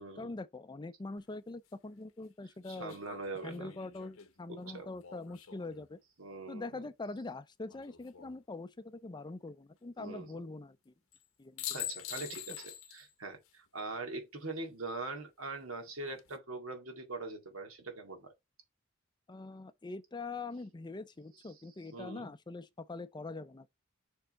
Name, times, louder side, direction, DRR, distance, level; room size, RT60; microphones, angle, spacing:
voice 1, 0.2-3.0 3.4-6.0 6.5-10.9 11.4-11.9 19.3-23.7, left 3 dB, 20° left, 0.5 m, -43 dB
sound 1, 1.2-1.3 2.6-5.9 7.7-8.3 11.1-11.3 11.6-13.1 13.4-13.5 15.9-16.4, left 12 dB, 80° left, 1.0 m, -45 dB
voice 2, 2.7-3.7 4.5-4.9 6.2-6.7 10.0-10.4 11.7-18.3 21.9-22.3, right 3 dB, 85° right, 2.0 m, -42 dB
6.8 x 3.6 x 4.1 m
head